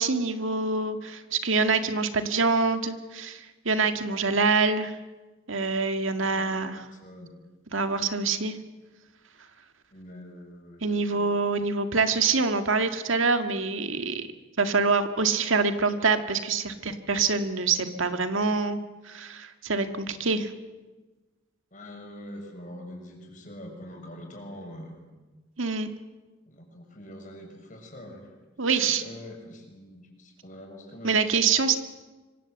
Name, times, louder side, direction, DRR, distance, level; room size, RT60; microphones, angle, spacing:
voice 1, 0.0-5.0 5.5-6.8 7.7-8.6 10.8-14.3 14.6-20.5 25.6-25.9 28.6-29.0 31.0-31.7, right 4 dB, 70° right, 8 dB, 1.8 m, -25 dB
voice 2, 6.9-7.4 9.9-11.3 20.1-20.3 21.7-25.0 26.5-28.3 28.8-31.3, left 1 dB, 40° left, 1 dB, 7.1 m, -44 dB
26.0 x 24.5 x 8.1 m, 1.2 s
head